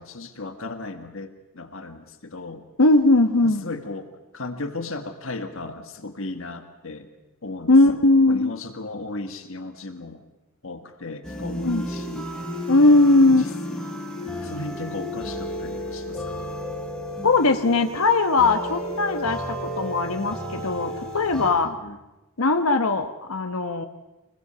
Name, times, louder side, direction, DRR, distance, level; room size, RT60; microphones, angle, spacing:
voice 1, 0.0-2.6 3.4-7.1 7.4-8.0 8.3-10.2 10.6-12.3 13.3-13.5 14.4-16.5 21.6-22.0, left 2 dB, 65° left, 7 dB, 1.6 m, -36 dB
voice 2, 2.8-3.6 7.7-8.5 11.6-11.8 12.7-13.4 17.2-21.7 22.4-23.9, left 2 dB, 80° left, 7 dB, 1.2 m, -19 dB
sound 1, 11.2-21.5, equal, 5° left, 4.2 m, -33 dB
25.5 x 20.5 x 6.9 m, 1.0 s
head